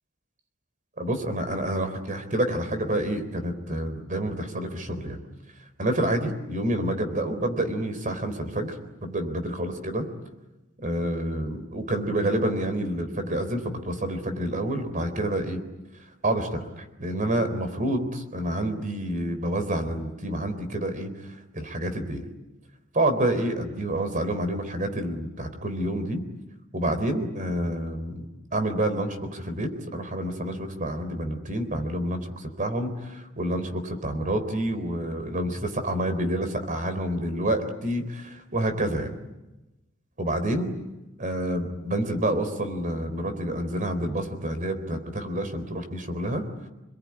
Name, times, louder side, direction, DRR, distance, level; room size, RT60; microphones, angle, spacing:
voice 1, 1.0-5.2 5.8-8.7 9.0-10.0 10.8-15.6 16.2-21.1 21.5-22.3 22.9-26.2 26.7-28.3 28.5-39.1 40.2-40.7 41.2-46.4, right 1 dB, 40° right, 9 dB, 3.9 m, -28 dB
27.5 x 21.5 x 9.9 m, 1.0 s
head